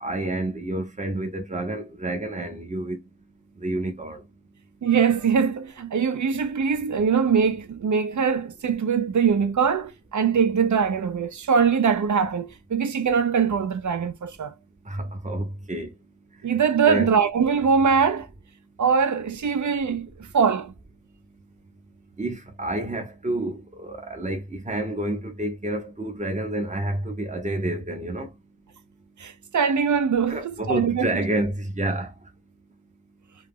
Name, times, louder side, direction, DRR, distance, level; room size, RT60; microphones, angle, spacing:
voice 1, 0.0-3.0 3.6-4.2 14.9-15.9 16.9-17.1 22.2-28.3 30.3-32.1, right 1 dB, 20° right, 0.7 m, -29 dB
voice 2, 4.8-14.5 16.4-18.3 18.8-20.7 29.2-31.1, right 6 dB, 50° right, 0.4 m, -22 dB
2.2 x 2.0 x 3.4 m
wide cardioid pair, 75°, 37 cm